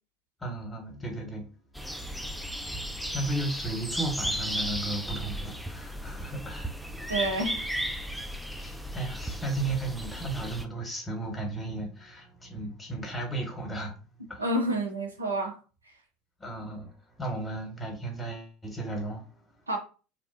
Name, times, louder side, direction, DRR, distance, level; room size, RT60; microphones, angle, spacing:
voice 1, 0.4-1.5 3.1-6.7 8.3-13.9 14.3-14.5 16.4-19.3, right 2 dB, 15° left, 1.1 m, -35 dB
sound 1, 1.8-10.7, equal, ahead, 0.3 m, -35 dB
voice 2, 7.1-7.6 14.4-15.6 19.7-19.8, right 1 dB, 85° right, 0.4 m, -28 dB
2.7 x 2.1 x 2.5 m
figure-of-eight pair, 70°, 0 cm